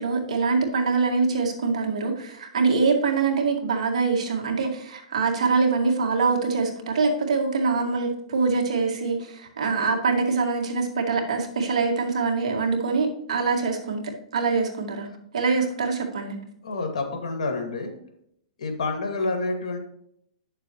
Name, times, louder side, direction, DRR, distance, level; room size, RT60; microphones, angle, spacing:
voice 1, 0.0-14.0 14.3-15.1 15.3-16.4, right 4 dB, 80° right, 2 dB, 2.1 m, -24 dB
voice 2, 16.6-17.9 18.6-19.8, left 3 dB, 85° left, 4 dB, 2.3 m, -28 dB
9.6 x 6.7 x 3.1 m, 0.71 s
hypercardioid pair, 130°, 4 cm